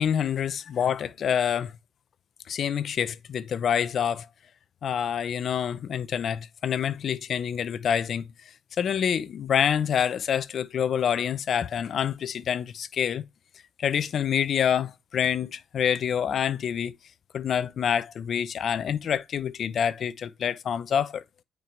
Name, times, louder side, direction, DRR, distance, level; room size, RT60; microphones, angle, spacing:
voice 1, 0.0-1.7 2.5-4.3 4.8-8.3 8.8-13.2 13.8-16.9 17.3-21.2, left 8 dB, 60° left, 0.6 m, -27 dB
9.0 x 4.7 x 3.2 m
cardioid pair, 90°, 0 cm